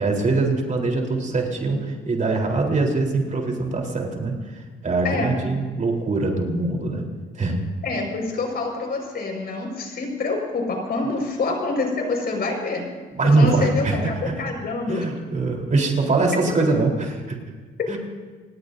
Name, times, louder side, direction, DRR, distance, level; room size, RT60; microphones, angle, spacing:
voice 1, 0.0-7.0 7.3-7.6 13.1-14.0 14.2-14.3 14.9-17.4 17.9-18.0, right 3 dB, 40° right, 1 dB, 3.9 m, -22 dB
voice 2, 7.8-12.9 13.2-15.1, left 3 dB, 55° left, 1 dB, 5.4 m, -26 dB
29.0 x 18.5 x 2.7 m, 1.4 s
cardioid pair, 90°, 20 cm